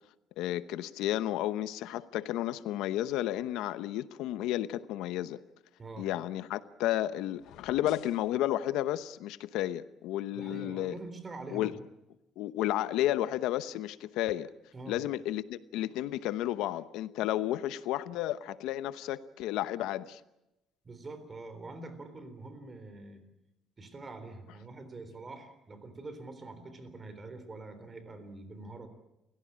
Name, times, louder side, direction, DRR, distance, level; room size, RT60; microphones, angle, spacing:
voice 1, 0.4-5.4 6.0-10.9 11.5-11.7 12.4-14.5 14.9-20.2, left 13 dB, 90° left, 0.9 m, -32 dB
voice 2, 5.8-6.1 10.3-11.8 14.7-15.0 20.8-23.2 23.8-28.9, right 2 dB, 20° right, 3.6 m, -45 dB
sound 1, 7.3-8.3, left 11 dB, 70° left, 1.1 m, -52 dB
29.5 x 16.5 x 8.7 m
cardioid pair, 155°, 0 cm